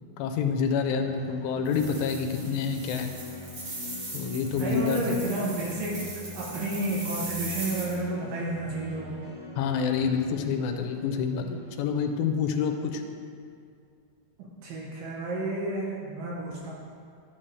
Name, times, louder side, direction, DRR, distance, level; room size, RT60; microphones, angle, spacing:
voice 1, 0.2-3.1 4.1-5.2 9.6-13.0, left 6 dB, 85° left, 6 dB, 2.4 m, -28 dB
sound 1, 0.7-11.9, left 3 dB, 40° right, 2.6 m, -45 dB
sound 2, 1.6-8.0, right 2 dB, 55° right, 1.2 m, -39 dB
voice 2, 4.6-9.3 14.4-16.7, right 2 dB, 75° right, -3 dB, 2.5 m, -31 dB
11.5 x 7.5 x 3.3 m, 2.3 s
omnidirectional pair, 4.2 m